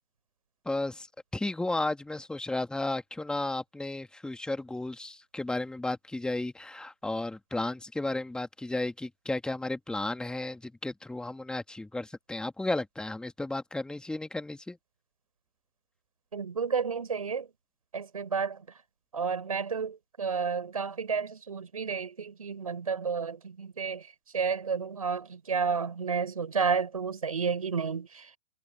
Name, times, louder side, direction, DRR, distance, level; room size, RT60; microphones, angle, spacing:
voice 1, 0.7-1.1 1.3-14.8, left 2 dB, 5° left, 2.0 m, -33 dB
voice 2, 16.3-17.5 17.9-18.6 19.1-24.0 24.3-28.4, right 5 dB, 85° right, 6.5 m, -31 dB
hypercardioid pair, 110°, 18 cm